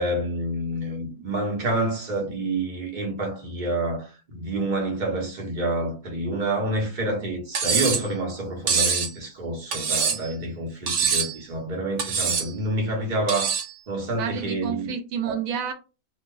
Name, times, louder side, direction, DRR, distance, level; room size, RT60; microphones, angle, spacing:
voice 1, 0.0-13.5 13.9-14.9 15.3-15.4, right 1 dB, 35° right, 1.2 m, -28 dB
Cutlery silverware, 7.5-8.1 8.7-9.1 9.7-10.3 10.9-11.4 12.0-12.5 13.3-13.7, right 6 dB, 65° right, 1.0 m, -24 dB
voice 2, 14.2-15.7, right 7 dB, 90° right, 1.1 m, -29 dB
2.7 x 2.3 x 3.7 m
omnidirectional pair, 1.4 m